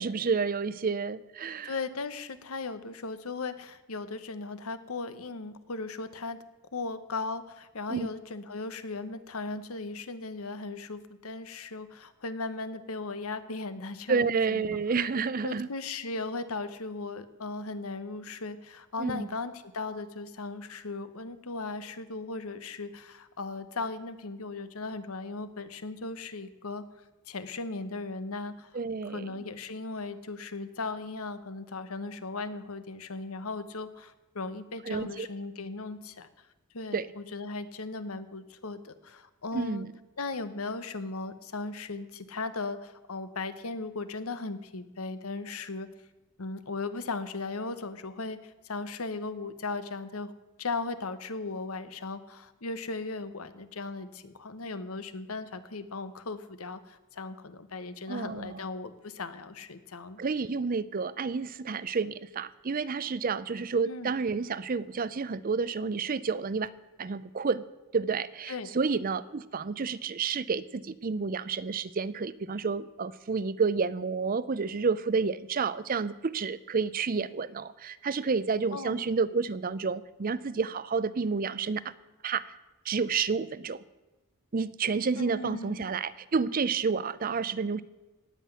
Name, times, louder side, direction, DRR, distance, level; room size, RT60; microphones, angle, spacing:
voice 1, 0.0-1.7 7.9-8.1 14.1-15.7 19.0-19.3 28.7-29.2 34.9-35.3 36.9-37.1 39.5-39.9 58.1-58.6 60.2-66.7 67.0-67.6 67.9-81.8 82.2-82.4 82.9-83.8 84.5-87.8, right 5 dB, 40° right, 17 dB, 0.5 m, -30 dB
voice 2, 1.6-6.4 6.7-14.6 15.4-26.9 27.3-28.7 29.0-36.3 36.7-39.9 40.2-45.9 46.4-50.3 50.6-60.2 63.8-64.1 68.5-68.7 78.7-79.0 85.1-85.9, left 3 dB, 80° left, 12 dB, 1.1 m, -37 dB
17.5 x 6.0 x 9.4 m, 1.1 s
head